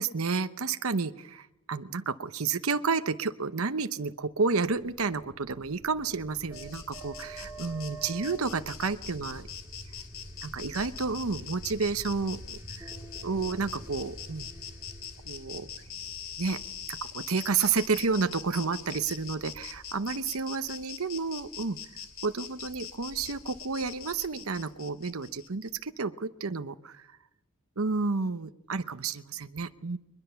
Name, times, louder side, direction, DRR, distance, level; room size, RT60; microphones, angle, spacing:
voice 1, 0.0-9.4 10.4-12.9 13.2-14.5 15.3-15.7 16.4-16.6 16.9-21.8 22.2-27.2 27.8-30.0, right 4 dB, 75° right, 10 dB, 0.9 m, -31 dB
sound 1, 4.5-18.1, right 1 dB, 10° right, 2.4 m, -47 dB
Insect, 6.5-25.7, left 8 dB, 65° left, 3.1 m, -43 dB
22.0 x 21.5 x 6.9 m, 0.90 s
head